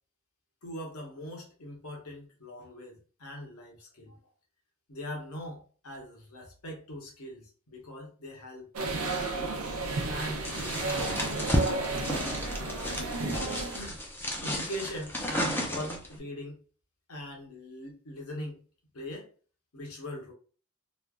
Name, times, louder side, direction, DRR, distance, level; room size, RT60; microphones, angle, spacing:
voice 1, 0.6-4.2 4.9-9.5 10.1-13.0 13.7-14.0 14.4-16.6 17.1-18.6 18.9-19.3 19.7-20.3, left 1 dB, 80° left, 1.0 m, -41 dB
sound 1, 8.7-13.8, right 3 dB, 85° right, 0.7 m, -32 dB
sound 2, 10.4-16.2, equal, 10° left, 0.5 m, -33 dB
3.2 x 2.4 x 2.3 m
head